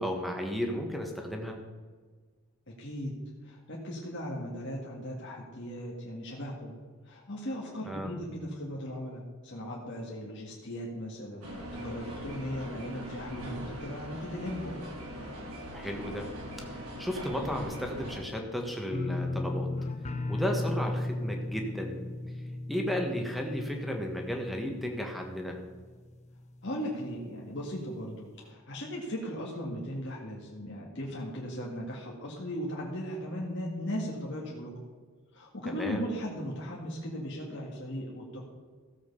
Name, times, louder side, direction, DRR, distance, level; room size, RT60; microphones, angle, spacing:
voice 1, 0.0-1.6 7.8-8.1 15.7-16.2 16.8-19.7 20.3-22.0 22.7-25.6 35.7-36.0, equal, ahead, 2 dB, 1.5 m, -34 dB
voice 2, 2.7-3.1 3.4-6.8 7.1-14.8 26.6-34.7 35.3-38.4, equal, 55° left, -3 dB, 1.9 m, -37 dB
sound 1, 11.4-18.2, equal, 75° right, 4.1 m, -41 dB
sound 2, 18.9-25.8 26.1-26.6 27.0-27.1, left 2 dB, 30° left, 0.7 m, -35 dB
15.0 x 7.9 x 5.4 m, 1.5 s
head